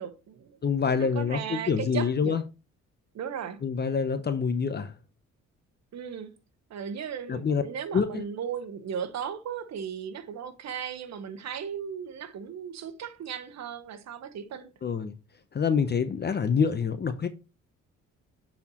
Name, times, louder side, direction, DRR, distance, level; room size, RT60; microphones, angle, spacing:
voice 1, 0.0-0.6 0.9-2.4 3.1-3.6 5.9-6.3 6.7-14.7, right 7 dB, 60° right, 1.1 m, -36 dB
voice 2, 0.6-2.4 3.6-4.9 7.3-7.6 7.9-8.2 14.8-15.1 15.5-17.3, left 6 dB, 35° left, 0.7 m, -26 dB
9.5 x 4.3 x 2.9 m
cardioid pair, 90°, 30 cm